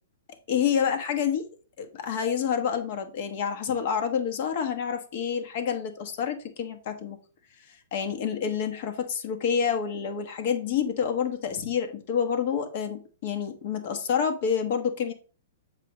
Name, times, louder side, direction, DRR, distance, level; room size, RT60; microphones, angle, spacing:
voice 1, 0.5-1.5 1.8-7.2 7.7-15.1, left 7 dB, 55° left, 1.3 m, -28 dB
7.5 x 5.0 x 3.0 m
hypercardioid pair, 125°, 0 cm